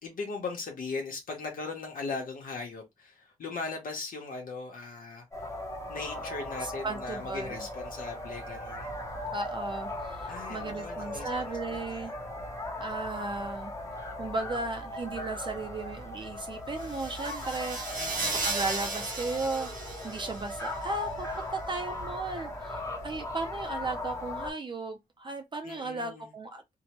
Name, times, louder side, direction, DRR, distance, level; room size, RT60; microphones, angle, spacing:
voice 1, 0.0-5.5 5.9-9.0 10.3-12.2 18.0-18.6 25.6-26.3, left 4 dB, 85° left, 1.0 m, -39 dB
sound 1, 5.3-24.5, left 1 dB, 20° left, 0.8 m, -38 dB
voice 2, 6.6-7.7 9.2-12.1 12.8-13.7 14.2-19.7 20.0-26.6, right 3 dB, 35° right, 0.4 m, -36 dB
sound 2, 16.8-20.7, right 3 dB, 80° right, 1.2 m, -35 dB
2.8 x 2.1 x 2.9 m
wide cardioid pair, 115°, 14 cm